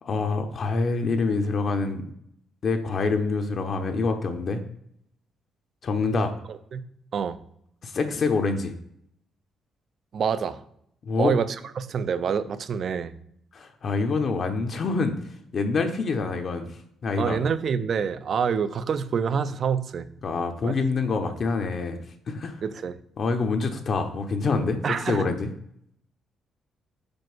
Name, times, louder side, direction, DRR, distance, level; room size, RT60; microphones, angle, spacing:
voice 1, 0.0-2.0 2.6-4.6 5.8-6.3 7.8-8.7 11.0-11.3 13.5-15.1 15.5-17.4 20.2-22.0 22.3-22.6 23.2-25.5, left 4 dB, 50° left, 5 dB, 0.9 m, -26 dB
voice 2, 10.1-10.6 11.2-13.1 17.2-20.1 20.6-20.7 22.6-23.0 24.8-25.3, right 6 dB, 55° right, 14 dB, 0.5 m, -26 dB
5.2 x 4.5 x 6.1 m, 0.72 s
cardioid pair, 90°, 0 cm